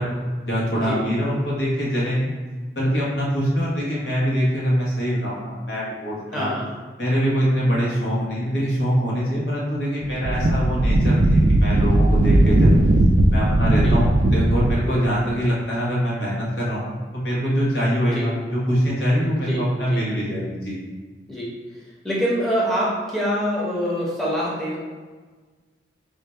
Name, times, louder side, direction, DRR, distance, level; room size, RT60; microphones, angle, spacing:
voice 1, 0.0-2.3 2.7-6.5 7.0-12.8 13.3-20.8, equal, 70° left, -6 dB, 1.1 m, -24 dB
voice 2, 6.3-6.7 13.8-14.0 18.1-18.3 19.4-20.0 21.3-21.5 22.0-24.8, equal, ahead, -7 dB, 0.8 m, -25 dB
Wind, 10.0-14.9, right 1 dB, 45° right, 0.3 m, -17 dB
3.6 x 2.3 x 4.3 m, 1.4 s
head